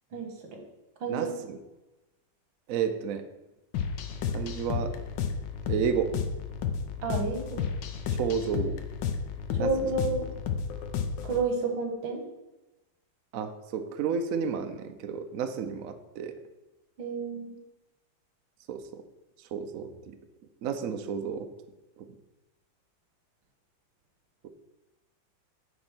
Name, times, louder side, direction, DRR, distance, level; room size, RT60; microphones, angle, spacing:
voice 1, 0.1-0.6 1.0-1.3 7.0-7.6 9.5-10.3 11.2-12.2 17.0-17.6, right 3 dB, 85° right, 2 dB, 2.1 m, -30 dB
voice 2, 1.1-1.6 2.7-3.2 4.3-4.9 5.7-6.1 8.2-8.8 9.6-9.7 13.3-16.3 18.7-19.0 19.5-19.9 20.6-21.5 24.4-24.5, right 7 dB, 65° right, 8 dB, 0.9 m, -31 dB
sound 1, 3.7-11.4, left 6 dB, 70° left, 1.4 m, -32 dB
9.5 x 3.8 x 6.0 m, 1.0 s
omnidirectional pair, 2.1 m